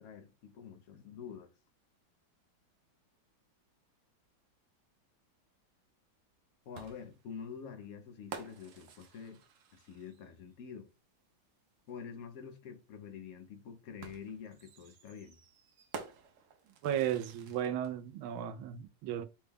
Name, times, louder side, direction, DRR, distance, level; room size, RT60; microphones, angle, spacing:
voice 1, 0.0-1.5 6.7-9.4 9.7-10.9 11.9-15.4, left 7 dB, 65° left, 0.9 m, -47 dB
sound 1, 6.7-10.4 11.9-12.0 14.0-17.9, right 6 dB, 70° right, 0.7 m, -50 dB
voice 2, 16.8-19.3, right 10 dB, 90° right, 1.4 m, -35 dB
6.2 x 2.2 x 3.4 m
omnidirectional pair, 2.2 m